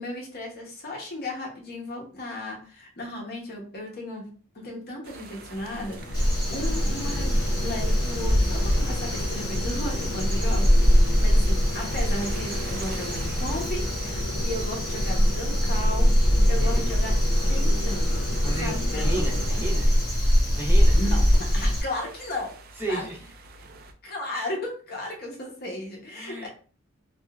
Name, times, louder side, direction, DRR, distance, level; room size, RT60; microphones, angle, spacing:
voice 1, 0.0-4.3 4.5-17.1 17.5-19.3 20.9-22.5 22.9-23.1 24.0-26.5, left 1 dB, 50° left, 0 dB, 0.8 m, -35 dB
sound 1, 5.0-23.9, right 4 dB, 45° right, 0.3 m, -46 dB
sound 2, 5.5-20.2, left 1 dB, 85° left, 0.5 m, -31 dB
Crow, 6.1-21.8, equal, 20° left, 1.1 m, -23 dB
voice 2, 18.4-19.9 20.5-21.0 22.8-23.2 26.2-26.5, right 2 dB, 10° right, -5 dB, 0.7 m, -33 dB
2.8 x 2.3 x 2.3 m, 0.40 s
head